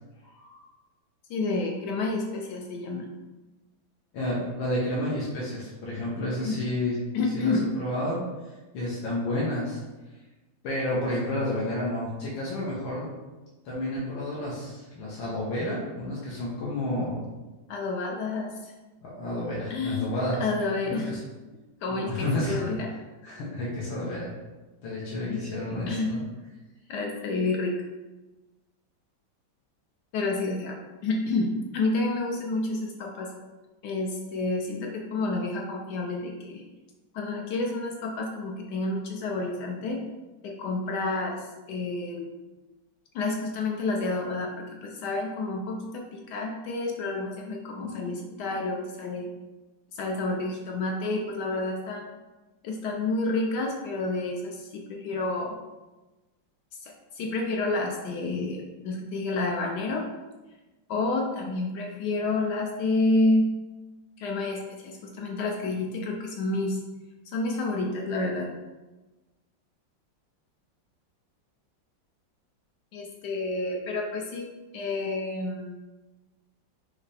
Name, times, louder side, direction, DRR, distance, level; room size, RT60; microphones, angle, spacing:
voice 1, 0.2-0.6 4.1-7.0 7.3-8.2 8.7-9.8 10.6-13.1 13.7-17.2 19.0-20.4 20.9-21.2 21.9-22.7 23.2-24.3 24.8-26.2, left 1 dB, 85° left, -6 dB, 1.7 m, -30 dB
voice 2, 1.3-3.1 6.4-6.6 7.1-7.7 17.7-18.7 19.7-21.1 21.8-22.9 25.3-25.4 25.9-26.2 26.9-27.7 30.1-33.3 33.8-36.6 37.1-40.0 40.4-42.3 43.1-49.3 49.9-52.1 52.6-55.6 56.8-60.1 60.9-63.5 64.2-66.8 67.3-68.5 72.9-74.5 74.7-75.8, left 2 dB, 70° left, 0 dB, 1.1 m, -29 dB
5.7 x 2.7 x 3.3 m, 1.2 s
omnidirectional pair, 2.1 m